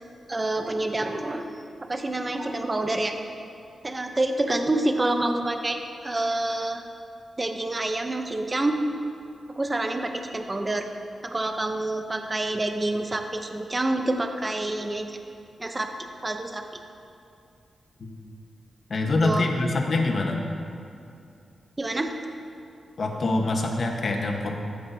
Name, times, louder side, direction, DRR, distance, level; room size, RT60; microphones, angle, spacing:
voice 1, 0.3-1.5 1.9-3.1 3.8-5.8 6.0-6.8 7.4-8.8 9.6-10.9 11.2-15.2 15.6-15.9 16.2-16.6 19.2-19.5 21.8-22.1, right 2 dB, 20° right, 5 dB, 0.7 m, -27 dB
voice 2, 18.9-20.4 23.0-24.5, left 2 dB, 50° left, 2 dB, 1.2 m, -25 dB
14.5 x 10.0 x 2.8 m, 2.5 s
wide cardioid pair, 115°, 0 cm